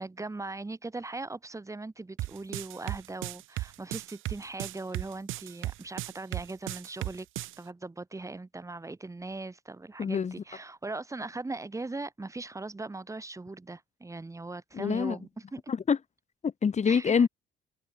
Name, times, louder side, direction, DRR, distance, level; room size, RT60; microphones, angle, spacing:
voice 1, 0.0-7.3 7.6-15.7 16.9-17.3, right 3 dB, 15° right, 1.1 m, -39 dB
sound 1, 2.2-7.6, right 17 dB, 85° right, 0.7 m, -35 dB
voice 2, 10.0-10.3 14.7-15.2 15.7-16.0 16.4-17.3, left 6 dB, 35° left, 1.2 m, -25 dB
cardioid pair, 90°, 20 cm